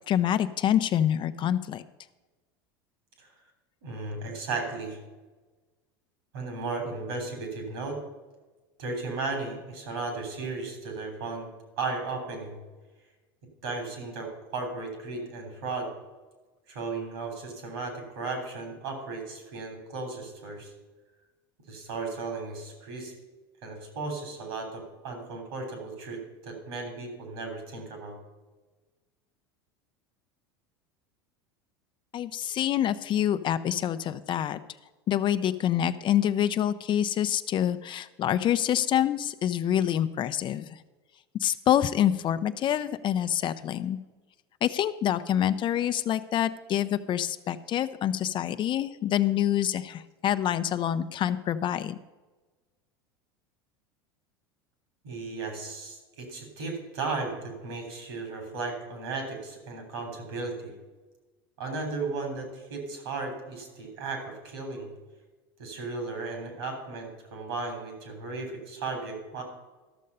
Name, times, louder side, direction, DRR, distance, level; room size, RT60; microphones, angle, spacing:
voice 1, 0.1-1.8 32.1-34.6 35.1-40.8 41.4-44.0 44.6-52.0, left 10 dB, 40° left, 12 dB, 0.6 m, -26 dB
voice 2, 3.8-5.0 6.3-8.0 8.8-11.5 11.8-12.6 13.6-15.9 16.7-20.7 21.7-23.1 23.6-28.2 55.0-60.7 61.6-64.9 65.6-69.4, right 3 dB, 75° right, 4 dB, 3.3 m, -35 dB
13.0 x 6.4 x 5.4 m, 1.3 s
hypercardioid pair, 85°, 13 cm